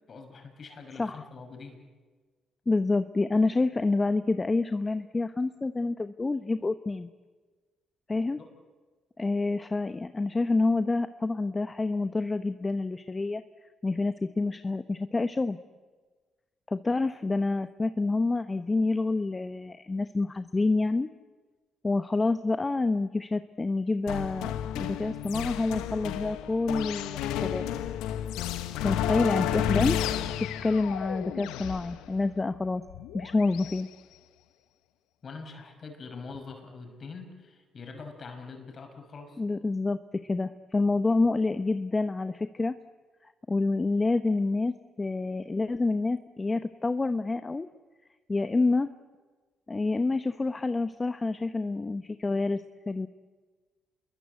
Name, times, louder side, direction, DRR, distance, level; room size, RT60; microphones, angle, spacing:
voice 1, 0.1-1.8 8.4-8.5 28.7-29.0 35.2-39.4, left 4 dB, 50° left, 5 dB, 6.1 m, -44 dB
voice 2, 2.7-7.1 8.1-8.4 9.2-13.4 13.8-15.6 16.7-21.1 21.8-27.6 28.8-32.8 33.1-33.9 39.4-42.7 43.5-47.7 48.3-48.9 49.7-53.1, left 3 dB, 30° left, 11 dB, 1.0 m, -28 dB
sound 1, 24.1-33.8, left 10 dB, 80° left, 1.1 m, -32 dB
27.5 x 22.0 x 8.2 m, 1.4 s
hypercardioid pair, 50°, 0 cm